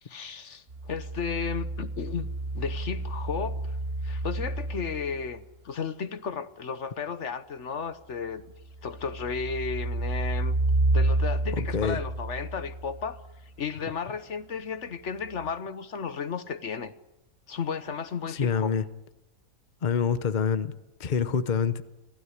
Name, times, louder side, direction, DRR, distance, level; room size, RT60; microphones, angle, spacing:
voice 1, 0.0-3.6 4.0-8.4 8.8-10.5 10.9-13.2 13.6-16.9 17.5-18.7, left 6 dB, 60° left, 1.3 m, -34 dB
sound 1, 0.7-5.3 8.7-13.3 15.4-15.5, right 2 dB, 45° right, 1.9 m, -30 dB
voice 2, 11.5-12.0 18.3-18.8 19.8-20.7 21.0-21.8, left 6 dB, 40° left, 1.0 m, -26 dB
25.5 x 16.0 x 9.9 m
omnidirectional pair, 1.4 m